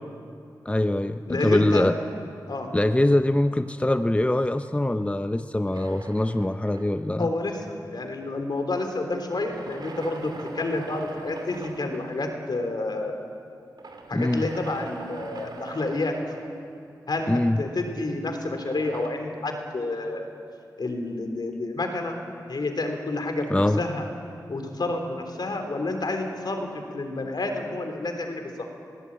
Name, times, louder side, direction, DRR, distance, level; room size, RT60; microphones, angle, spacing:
voice 1, 0.6-1.9 2.7-7.3 14.1-14.5 17.3-17.6 23.5-23.8, left 1 dB, 15° left, 9 dB, 0.7 m, -23 dB
voice 2, 1.3-1.9 2.5-2.7 7.2-13.2 14.1-16.1 17.1-20.3 20.8-24.1 24.5-28.6, left 2 dB, 65° left, 4 dB, 3.4 m, -29 dB
sound 1, 5.7-7.3 9.1-12.3 13.8-17.0 18.5-19.1, right 3 dB, 65° right, 2.7 m, -42 dB
21.5 x 16.5 x 8.8 m, 2.4 s
cardioid pair, 45°, 8 cm